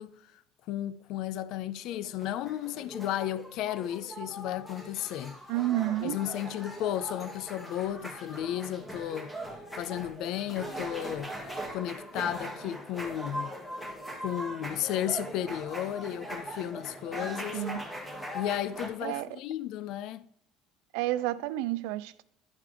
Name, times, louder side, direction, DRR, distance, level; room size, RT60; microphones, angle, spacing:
voice 1, 0.0-5.4 6.0-9.3 9.8-11.4 11.7-13.6 14.2-17.6 18.3-20.3, left 12 dB, 60° left, 0.4 m, -34 dB
sound 1, 1.9-18.9, right 1 dB, 10° left, 1.7 m, -40 dB
voice 2, 5.5-6.2 17.5-17.8 19.0-19.3 20.9-22.2, right 14 dB, 85° right, 0.5 m, -30 dB
11.5 x 4.8 x 3.3 m
cardioid pair, 145°, 0 cm